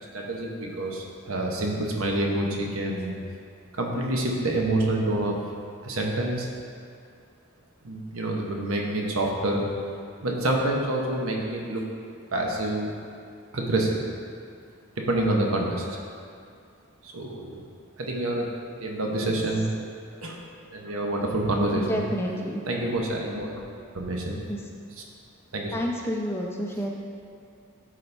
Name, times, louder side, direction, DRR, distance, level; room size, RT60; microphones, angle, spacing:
voice 1, 0.1-3.2 3.7-5.4 5.8-6.5 7.8-9.7 10.2-11.9 12.3-12.9 13.5-14.0 15.0-16.0 17.0-17.6 18.0-18.5 18.8-19.7 20.2-20.4 20.7-21.8 22.7-23.5 23.9-24.4 25.5-25.7, right 1 dB, 80° right, 0 dB, 1.0 m, -27 dB
voice 2, 19.1-19.4 20.1-20.3 21.7-22.6 24.5-24.7 25.7-26.9, equal, 10° left, 0 dB, 0.5 m, -30 dB
11.0 x 4.2 x 3.4 m, 2.4 s
head